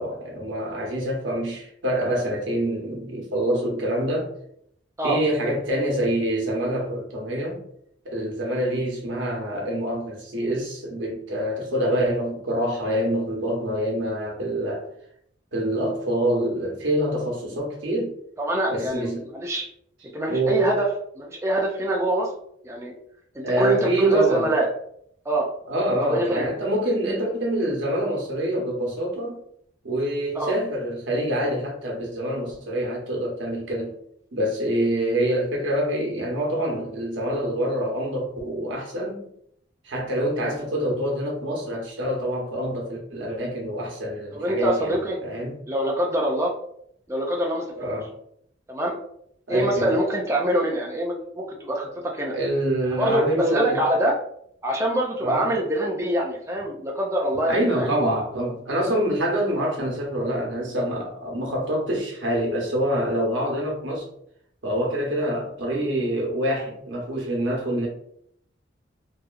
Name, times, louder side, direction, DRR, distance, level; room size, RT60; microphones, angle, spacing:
voice 1, 0.0-4.3 5.0-7.6 8.0-14.9 15.5-18.1 18.7-19.3 20.3-20.6 23.4-24.5 25.7-29.4 29.8-33.9 34.3-39.2 39.8-45.6 47.8-48.1 49.5-49.9 52.3-53.8 55.2-55.5 57.5-64.1 64.6-67.9, right 1 dB, 85° right, 0.8 m, -26 dB
voice 2, 18.4-19.7 20.1-20.9 21.2-22.3 22.6-22.9 23.3-24.7 25.3-25.5 26.0-26.4 30.3-30.5 44.3-45.2 45.7-46.5 47.1-47.7 48.7-49.0 49.5-52.3 53.0-54.2 54.6-57.9, right 1 dB, 15° right, 0.3 m, -24 dB
2.8 x 2.3 x 2.3 m
head